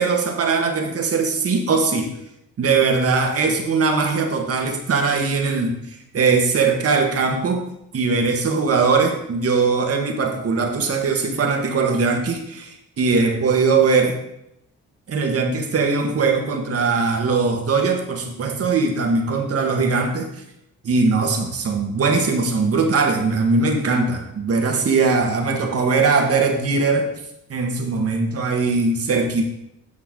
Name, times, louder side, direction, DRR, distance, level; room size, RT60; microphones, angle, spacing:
voice 1, 0.0-2.1 2.6-7.6 7.9-14.2 15.1-20.3 20.8-27.1 27.5-29.4, right 4 dB, 50° right, 3 dB, 1.5 m, -20 dB
9.8 x 5.5 x 3.8 m, 0.80 s
cardioid pair, 90°, 30 cm